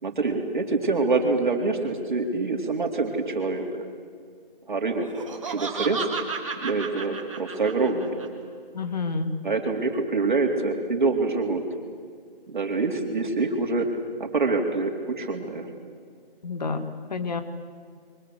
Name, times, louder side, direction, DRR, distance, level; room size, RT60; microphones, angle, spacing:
voice 1, 0.0-3.7 4.7-5.1 5.5-6.0 6.6-8.2 9.4-11.6 12.5-13.9 14.2-15.7, right 3 dB, 55° right, 4 dB, 3.9 m, -25 dB
Laughter, 5.0-8.3, right 5 dB, 35° right, 3.4 m, -33 dB
voice 2, 8.7-9.3 16.4-17.4, left 4 dB, 45° left, 8 dB, 2.3 m, -29 dB
29.0 x 24.0 x 8.0 m, 2.1 s
hypercardioid pair, 170°, 29 cm